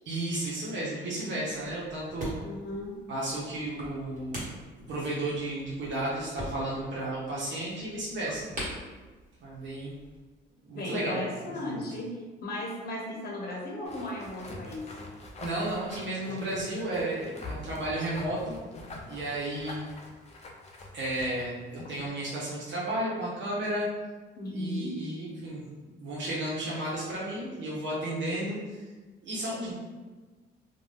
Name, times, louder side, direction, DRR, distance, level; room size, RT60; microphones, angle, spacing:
voice 1, 0.0-2.3 3.1-4.4 4.7-8.4 9.4-9.9 10.6-11.2 11.5-11.8 15.4-18.6 19.0-19.8 20.9-23.9 24.5-28.9 29.2-29.7, right 1 dB, 70° right, -7 dB, 0.8 m, -33 dB
sound 1, 1.5-10.2, equal, 40° right, 1.2 m, -43 dB
voice 2, 2.4-2.9 10.7-14.9 24.4-25.0, left 1 dB, 50° left, -3 dB, 0.9 m, -36 dB
sound 2, 13.8-22.1, left 2 dB, 35° left, 0.5 m, -44 dB
2.5 x 2.2 x 3.3 m, 1.3 s
cardioid pair, 90°, 20 cm